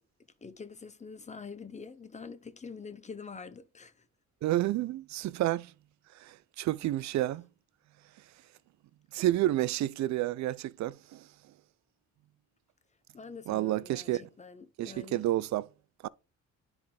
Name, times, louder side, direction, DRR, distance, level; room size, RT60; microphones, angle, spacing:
voice 1, 0.4-4.1 13.1-15.2, left 5 dB, 25° left, 0.6 m, -45 dB
voice 2, 4.4-5.7 6.2-7.5 9.1-11.3 13.5-14.2 14.8-15.7 16.0-16.1, right 15 dB, 65° right, 0.4 m, -30 dB
10.0 x 3.5 x 3.3 m
cardioid pair, 90°, 30 cm